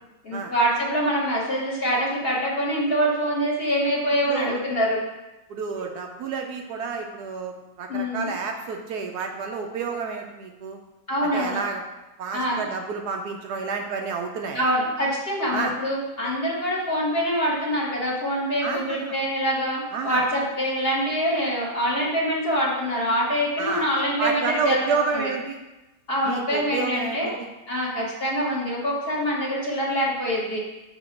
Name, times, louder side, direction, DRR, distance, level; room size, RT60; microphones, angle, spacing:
voice 1, 0.2-5.0 7.9-8.3 11.1-11.6 12.3-12.6 14.5-24.8 26.1-27.3 27.7-30.6, equal, 35° left, -5 dB, 1.5 m, -25 dB
voice 2, 4.2-4.6 5.5-7.5 7.8-10.8 11.3-11.8 12.2-14.7 15.5-15.7 18.6-19.2 19.9-20.3 23.6-23.9 24.2-25.6 26.2-27.5, right 5 dB, 70° right, 3 dB, 1.1 m, -29 dB
7.0 x 2.9 x 5.7 m, 1.0 s
omnidirectional pair, 1.9 m